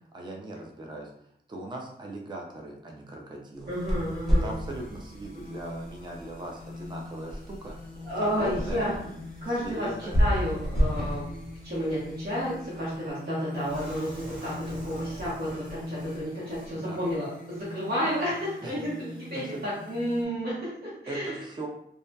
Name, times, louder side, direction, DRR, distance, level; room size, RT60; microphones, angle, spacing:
voice 1, 0.1-1.1 1.5-3.7 4.4-7.8 8.2-8.9 9.6-10.2 16.7-17.0 18.6-18.7 19.3-19.6 21.1-21.7, right 2 dB, 25° right, 0 dB, 0.5 m, -39 dB
sound 1, 3.6-12.9, equal, ahead, 0.8 m, -31 dB
voice 2, 3.6-4.5 8.1-8.9 9.4-11.3 11.6-21.4, equal, 60° right, -9 dB, 1.0 m, -31 dB
sound 2, 3.7-20.2, left 2 dB, 45° left, 0.6 m, -43 dB
sound 3, 13.5-16.7 17.0-17.1 17.5-17.6, right 1 dB, 85° right, 1.2 m, -44 dB
2.6 x 2.3 x 2.2 m, 0.72 s
wide cardioid pair, 85°, 19 cm